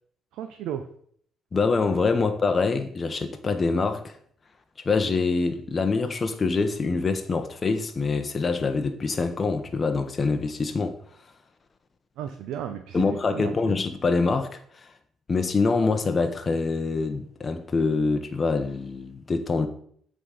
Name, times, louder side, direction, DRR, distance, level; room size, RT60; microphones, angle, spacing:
voice 1, 0.3-0.8 12.2-13.7, right 9 dB, 90° right, 0.5 m, -34 dB
voice 2, 1.5-4.1 4.8-10.9 12.9-14.9 15.3-19.7, left 4 dB, 35° left, 0.7 m, -25 dB
7.9 x 3.7 x 4.8 m
cardioid pair, 90°, 0 cm